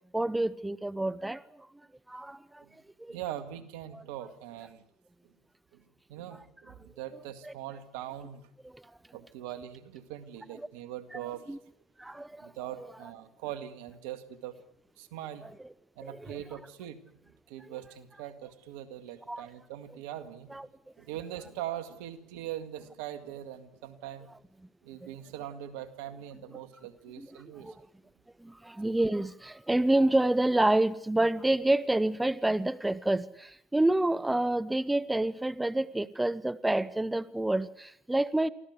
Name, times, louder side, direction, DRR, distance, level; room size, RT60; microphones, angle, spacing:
voice 1, 0.1-1.4 2.1-2.4 3.1-3.2 3.9-4.0 7.4-7.5 11.1-11.2 11.5-11.6 12.0-12.4 12.8-12.9 15.4-15.5 16.0-16.4 19.3-19.5 20.5-20.7 27.2-27.3 27.6-27.7 28.4-38.5, right 1 dB, 10° right, 17 dB, 0.9 m, -28 dB
voice 2, 3.1-4.8 5.7-5.8 6.1-8.4 9.1-11.6 12.4-14.6 15.0-15.5 16.0-17.0 17.5-20.6 21.0-24.3 24.8-27.8, right 12 dB, 75° right, 10 dB, 2.0 m, -41 dB
24.5 x 15.5 x 9.5 m, 0.76 s
hypercardioid pair, 75°, 0 cm